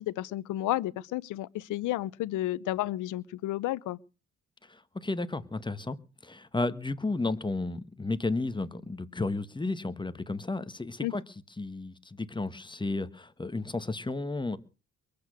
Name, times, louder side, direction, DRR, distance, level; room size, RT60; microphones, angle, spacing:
voice 1, 0.0-4.0 11.0-11.1, left 15 dB, 90° left, 0.9 m, -32 dB
voice 2, 4.7-6.0 6.2-11.2 11.6-14.6, left 2 dB, 15° left, 1.5 m, -33 dB
23.0 x 8.7 x 6.5 m
cardioid pair, 90°, 30 cm